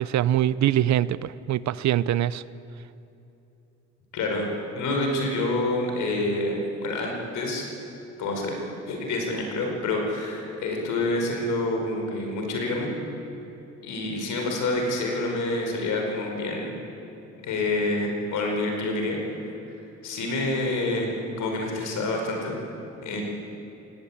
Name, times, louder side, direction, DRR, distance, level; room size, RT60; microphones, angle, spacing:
voice 1, 0.0-2.4, right 12 dB, 65° right, 18 dB, 0.6 m, -23 dB
voice 2, 4.1-4.5 4.8-7.7 8.2-8.6 8.9-12.9 13.8-16.7 17.4-19.2 20.0-22.6 23.0-23.2, left 2 dB, 80° left, 1 dB, 5.2 m, -27 dB
19.5 x 17.0 x 8.7 m, 2.9 s
cardioid pair, 90°, 30 cm